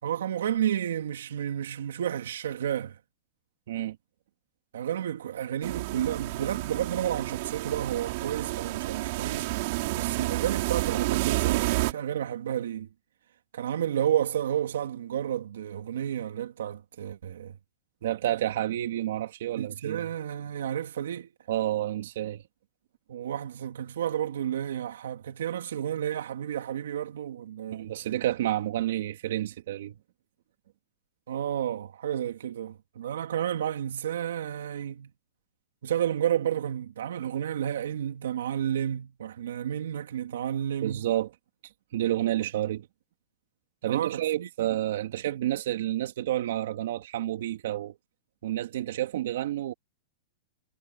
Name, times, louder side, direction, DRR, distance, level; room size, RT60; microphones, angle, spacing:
voice 1, 0.0-3.0 4.7-9.5 10.0-12.9 13.5-17.5 19.6-21.3 23.1-27.9 31.3-35.1 35.8-41.1 43.9-44.8, right 10 dB, 85° right, 2.6 m, -31 dB
sound 1, 5.6-11.9, right 22 dB, 45° right, 5.8 m, -30 dB
voice 2, 18.0-20.1 21.5-22.4 27.7-29.9 40.8-41.3 41.9-42.9 43.8-48.0 48.4-49.7, right 13 dB, 60° right, 3.1 m, -29 dB
supercardioid pair, 170°, 0 cm